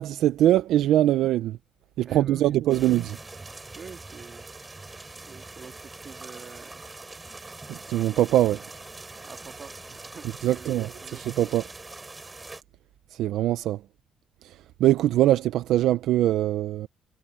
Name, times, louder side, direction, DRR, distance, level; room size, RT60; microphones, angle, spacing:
voice 1, 0.0-1.6 2.0-3.2 7.7-8.6 10.4-11.6 13.1-13.8 14.4-16.9, right 13 dB, 80° right, 0.7 m, -23 dB
voice 2, 2.0-2.6 3.8-4.5 5.3-6.8 9.2-11.3, right 6 dB, 40° right, 3.5 m, -46 dB
sound 1, 2.7-12.6, right 3 dB, 20° right, 3.5 m, -43 dB
cardioid pair, 110°, 0 cm